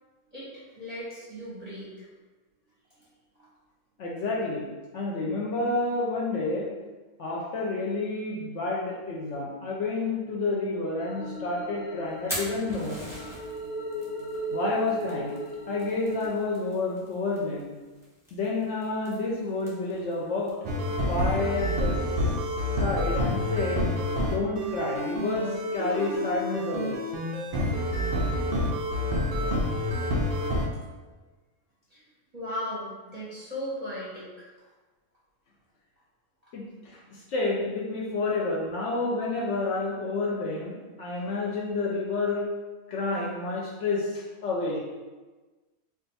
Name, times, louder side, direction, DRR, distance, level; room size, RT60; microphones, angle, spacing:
voice 1, 0.3-2.1 3.4-3.5 31.9-32.0 32.3-34.5 36.4-36.5, equal, 35° right, -8 dB, 0.7 m, -37 dB
voice 2, 4.0-6.7 7.2-13.2 14.5-15.3 15.7-17.7 18.3-20.6 21.1-21.9 22.8-23.8 24.2-27.0 36.5-42.5 42.9-44.8, left 3 dB, 65° left, -3 dB, 0.8 m, -29 dB
sound 1, 11.0-16.3, right 1 dB, 85° left, 1.1 m, -37 dB
Fire, 12.1-23.5, equal, 5° right, 0.6 m, -45 dB
sound 2, 20.6-30.7, left 1 dB, 85° right, 0.4 m, -28 dB
2.4 x 2.4 x 3.9 m, 1.3 s
omnidirectional pair, 1.5 m